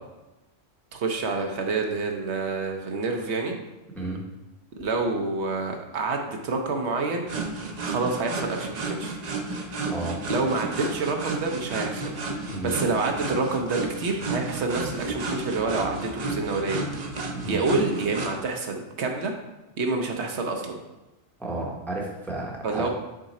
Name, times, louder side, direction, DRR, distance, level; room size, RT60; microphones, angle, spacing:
voice 1, 0.9-3.5 4.8-7.3 7.8-9.2 10.3-12.1 12.6-16.8 17.5-19.3 19.8-20.8 22.6-22.9, right 3 dB, 70° right, 3 dB, 1.0 m, -27 dB
sound 1, 7.3-18.3, right 3 dB, 45° right, 0.7 m, -32 dB
voice 2, 9.9-10.2 12.5-12.7 17.3-17.6 21.4-22.9, right 2 dB, ahead, -1 dB, 0.7 m, -32 dB
6.4 x 3.7 x 4.2 m, 1.0 s
omnidirectional pair, 1.2 m